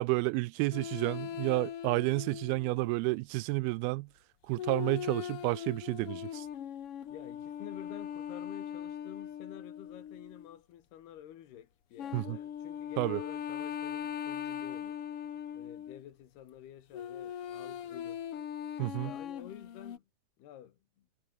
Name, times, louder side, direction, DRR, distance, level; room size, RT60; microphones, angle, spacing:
voice 1, 0.0-4.1 4.5-6.5 12.1-12.4 13.0-13.2 18.8-19.1, right 22 dB, 85° right, 2.4 m, -31 dB
sound 1, 0.7-2.9 4.6-10.6 12.0-16.0 16.9-20.0, left 9 dB, 55° left, 1.7 m, -40 dB
voice 2, 1.9-2.2 7.1-15.0 15.5-18.3 19.0-20.1 20.4-21.1, left 11 dB, 85° left, 4.0 m, -50 dB
omnidirectional pair, 4.5 m